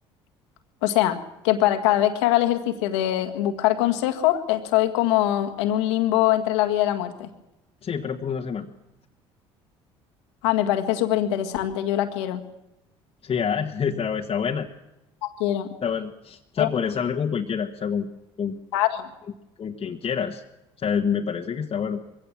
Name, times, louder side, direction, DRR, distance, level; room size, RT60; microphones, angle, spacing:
voice 1, 0.8-1.2 1.4-7.3 10.4-12.4 15.2-15.7 16.6-16.7 18.7-19.1, left 13 dB, 80° left, 6 dB, 1.8 m, -23 dB
voice 2, 7.8-8.7 13.2-14.7 15.8-18.1 18.4-18.5 19.6-20.4 20.8-22.0, left 7 dB, 40° left, 1 dB, 1.5 m, -27 dB
22.5 x 16.5 x 7.4 m, 0.93 s
hypercardioid pair, 65°, 14 cm